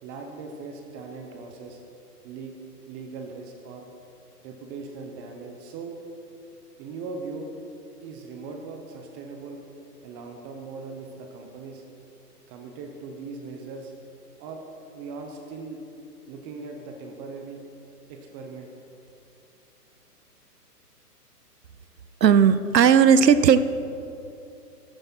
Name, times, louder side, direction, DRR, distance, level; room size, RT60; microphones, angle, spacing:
voice 1, 0.0-1.8 2.2-2.5 2.9-3.9 4.4-6.0 6.8-7.5 8.0-9.6 10.0-11.8 12.5-13.9 14.4-14.6 14.9-15.8 16.3-17.6 18.1-18.7, right 4 dB, 20° right, 4 dB, 0.8 m, -39 dB
voice 2, 22.2-23.6, right 7 dB, 90° right, 13 dB, 0.8 m, -16 dB
14.5 x 9.9 x 4.4 m, 2.8 s
hypercardioid pair, 130°, 48 cm